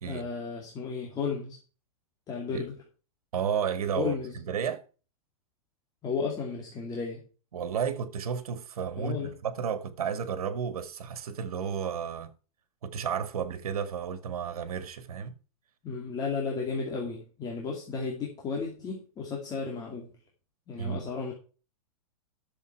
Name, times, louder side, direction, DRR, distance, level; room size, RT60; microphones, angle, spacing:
voice 1, 0.1-1.6 2.3-2.7 4.0-4.4 6.0-7.3 8.9-9.4 15.8-20.1 20.7-21.3, left 5 dB, 20° left, 2.3 m, -33 dB
voice 2, 3.3-4.2 4.5-4.8 7.5-12.3 12.8-15.4 20.8-21.1, right 7 dB, 85° right, 1.8 m, -32 dB
11.0 x 7.3 x 4.6 m
supercardioid pair, 155°, 18 cm